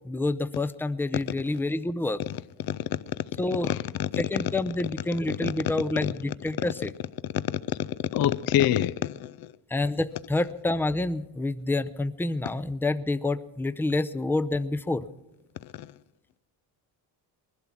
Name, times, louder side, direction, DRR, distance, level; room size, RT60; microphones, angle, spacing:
voice 1, 0.0-2.2 3.4-3.7 4.2-6.9 9.7-15.1, left 2 dB, 5° left, 0.5 m, -28 dB
voice 2, 8.1-9.3, left 11 dB, 55° left, 0.5 m, -24 dB
20.0 x 12.0 x 6.0 m
cardioid pair, 80°, 43 cm